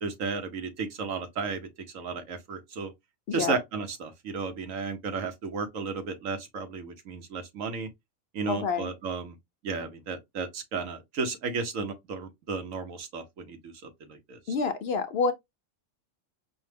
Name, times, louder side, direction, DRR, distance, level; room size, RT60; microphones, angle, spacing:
voice 1, 0.0-1.7 1.9-2.9 3.3-7.9 8.3-9.3 9.6-14.4, right 5 dB, 80° right, 1.3 m, -34 dB
voice 2, 3.3-3.6 8.5-8.9 14.5-15.3, left 5 dB, 65° left, 0.7 m, -27 dB
5.2 x 2.1 x 3.3 m
omnidirectional pair, 1.4 m